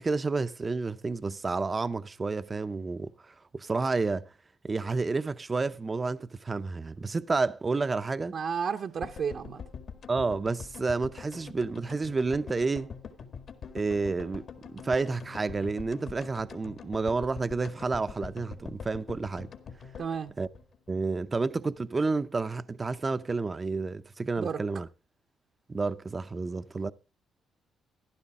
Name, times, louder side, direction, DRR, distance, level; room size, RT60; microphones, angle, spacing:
voice 1, 0.0-3.1 3.5-4.3 4.6-8.3 10.1-12.9 13.7-14.5 14.8-19.5 20.4-20.5 20.9-24.9 25.7-26.9, right 3 dB, 30° right, 0.6 m, -30 dB
voice 2, 8.3-9.6 20.0-20.3 24.4-24.6, right 6 dB, 60° right, 0.8 m, -32 dB
sound 1, 9.0-21.2 21.5-21.6 21.7-21.8, left 6 dB, 60° left, 1.8 m, -45 dB
14.0 x 11.5 x 3.6 m
cardioid pair, 90°, 0 cm